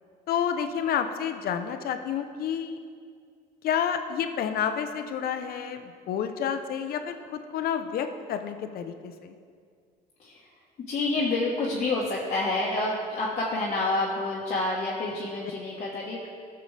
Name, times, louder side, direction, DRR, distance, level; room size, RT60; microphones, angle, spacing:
voice 1, 0.3-2.8 3.6-9.4, left 8 dB, 65° left, 8 dB, 0.7 m, -30 dB
voice 2, 10.9-16.3, left 2 dB, 45° left, -5 dB, 1.3 m, -28 dB
14.0 x 6.8 x 3.3 m, 2.2 s
cardioid pair, 110°, 17 cm